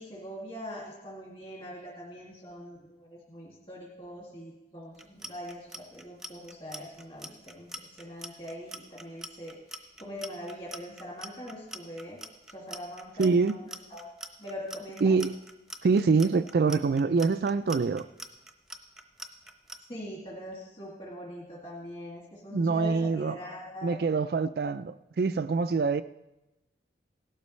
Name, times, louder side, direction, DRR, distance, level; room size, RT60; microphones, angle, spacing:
voice 1, 0.0-12.2 12.5-14.1 14.4-15.1 19.9-24.0, equal, 30° left, 2.2 m, -42 dB
Clock, 4.9-19.8, right 1 dB, 5° right, 0.8 m, -43 dB
voice 2, 13.2-13.6 15.0-15.4 15.8-18.1 22.5-23.3 23.8-26.0, right 4 dB, 55° right, 0.3 m, -25 dB
17.5 x 12.0 x 3.2 m
head